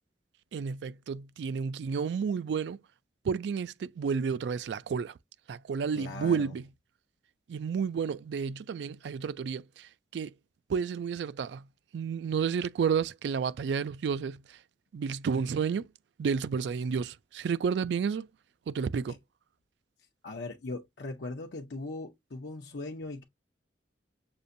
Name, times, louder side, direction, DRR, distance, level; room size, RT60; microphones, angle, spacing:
voice 1, 0.5-2.8 3.2-5.2 5.5-6.7 7.5-10.3 10.7-11.6 11.9-14.6 14.9-15.9 16.2-18.3 18.7-19.2, right 6 dB, 70° right, 0.3 m, -31 dB
voice 2, 5.9-6.5 19.1-19.2 20.2-23.2, left 2 dB, 75° left, 0.7 m, -39 dB
6.8 x 2.5 x 2.6 m
head